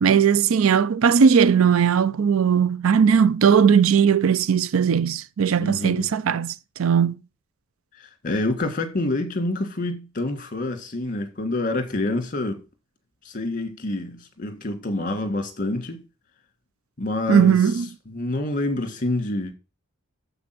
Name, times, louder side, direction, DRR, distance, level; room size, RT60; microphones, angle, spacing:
voice 1, 0.0-7.1 17.3-17.9, right 7 dB, 85° right, 0.4 m, -18 dB
voice 2, 5.6-6.1 7.9-12.6 13.2-16.0 17.0-19.5, left 2 dB, 40° left, 1.9 m, -27 dB
7.3 x 6.0 x 6.0 m
head